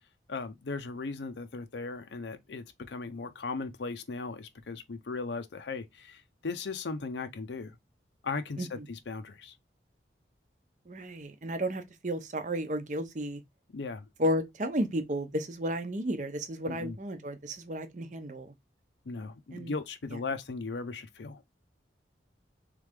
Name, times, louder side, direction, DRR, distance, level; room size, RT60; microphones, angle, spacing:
voice 1, 0.3-7.8 8.2-9.5 13.7-14.0 16.7-17.0 19.1-21.4, left 4 dB, 75° left, 0.6 m, -37 dB
voice 2, 10.9-13.4 14.2-18.5 19.5-19.7, equal, 40° right, 0.7 m, -33 dB
3.7 x 3.3 x 3.5 m
head